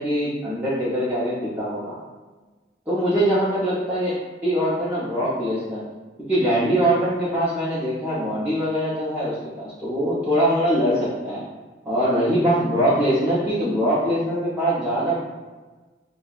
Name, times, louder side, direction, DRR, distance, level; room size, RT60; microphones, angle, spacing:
voice 1, 0.0-2.0 2.9-5.8 6.2-11.4 11.8-15.2, equal, 10° right, -11 dB, 0.8 m, -22 dB
6.7 x 2.3 x 2.4 m, 1.3 s
head